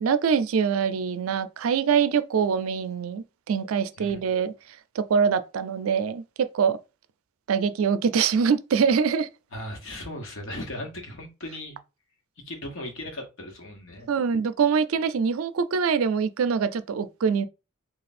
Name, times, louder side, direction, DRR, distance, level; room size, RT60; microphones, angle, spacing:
voice 1, 0.0-4.5 5.0-6.8 7.5-9.3 14.1-17.4, right 6 dB, 85° right, 0.4 m, -24 dB
voice 2, 9.5-11.8 12.4-14.1, left 1 dB, 65° left, 1.1 m, -37 dB
3.2 x 2.3 x 4.1 m
head